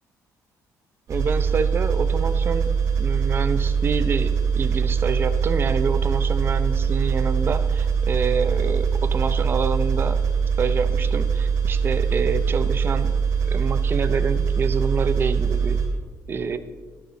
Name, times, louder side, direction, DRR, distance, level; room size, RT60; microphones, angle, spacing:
voice 1, 1.1-2.7 3.0-10.2 10.6-13.1 13.4-15.8 16.3-16.6, right 5 dB, 35° right, 11 dB, 0.7 m, -27 dB
sound 1, 1.1-15.9, right 6 dB, 55° right, 2.4 m, -22 dB
12.5 x 11.0 x 4.1 m, 1.4 s
cardioid pair, 130°, 7 cm